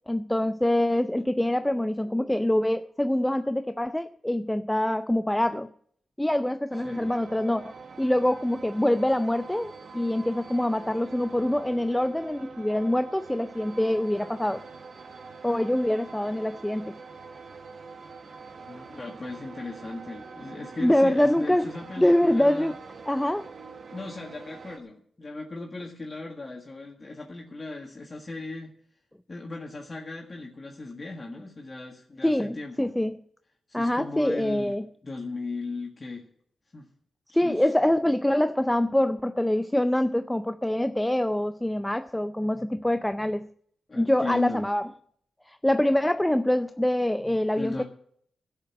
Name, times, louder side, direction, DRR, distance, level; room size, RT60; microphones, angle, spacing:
voice 1, 0.1-5.7 6.2-14.7 15.4-17.0 20.8-21.7 22.0-22.8 23.1-23.5 32.2-33.2 33.7-34.9 37.3-43.5 44.0-44.9 45.5-47.8, left 1 dB, 10° left, 0.4 m, -25 dB
sound 1, 6.7-24.8, right 4 dB, 55° right, 1.2 m, -45 dB
voice 2, 6.8-7.2 18.6-22.7 23.9-28.7 29.3-32.9 33.7-34.7 35.0-36.3 36.7-36.9 37.4-37.6 43.9-44.7 47.6-47.8, left 3 dB, 35° left, 1.8 m, -37 dB
12.0 x 6.6 x 9.7 m
cardioid pair, 70°, 0 cm